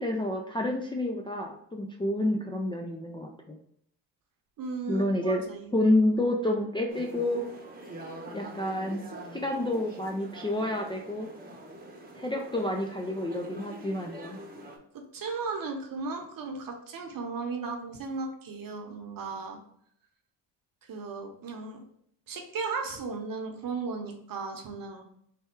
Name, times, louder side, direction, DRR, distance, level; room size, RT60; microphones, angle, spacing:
voice 1, 0.0-3.6 4.9-5.4 5.7-7.4 8.3-9.0 9.3-11.3 12.2-14.4, left 1 dB, 10° left, 0 dB, 0.4 m, -29 dB
voice 2, 4.6-5.7 14.9-19.6 20.8-21.8 22.3-25.0, right 4 dB, 50° right, 4 dB, 0.9 m, -36 dB
sound 1, 6.9-14.8, right 2 dB, 20° right, 0.8 m, -44 dB
3.4 x 2.2 x 4.3 m, 0.68 s
cardioid pair, 80°, 43 cm